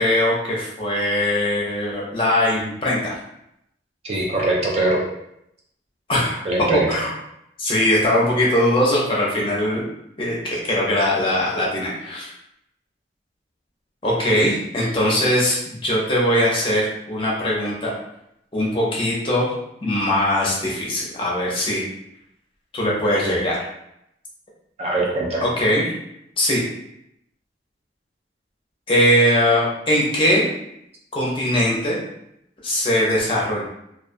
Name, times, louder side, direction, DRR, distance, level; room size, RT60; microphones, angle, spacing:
voice 1, 0.0-3.2 6.1-6.4 6.7-7.1 7.6-9.8 10.2-12.3 14.0-17.9 18.5-19.5 19.8-21.8 22.7-23.6 25.4-25.9 26.4-26.6 28.9-30.5 31.1-32.0 32.6-33.7, left 1 dB, 30° left, -4 dB, 0.6 m, -21 dB
voice 2, 4.0-5.0 6.4-6.9 14.3-14.4 24.8-25.4, right 2 dB, 35° right, -3 dB, 0.4 m, -22 dB
2.3 x 2.2 x 2.5 m, 0.79 s
head